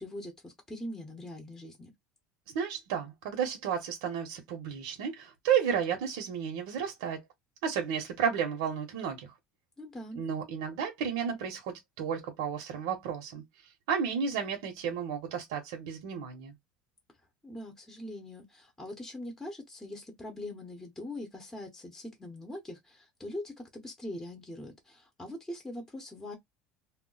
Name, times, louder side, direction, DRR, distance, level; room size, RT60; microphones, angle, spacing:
voice 1, 0.0-1.9 9.8-10.2 17.4-26.4, left 1 dB, 10° left, 0.8 m, -42 dB
voice 2, 2.5-7.2 7.6-9.3 10.1-16.5, right 7 dB, 85° right, 0.8 m, -32 dB
2.2 x 2.1 x 3.8 m
cardioid pair, 130°, 3 cm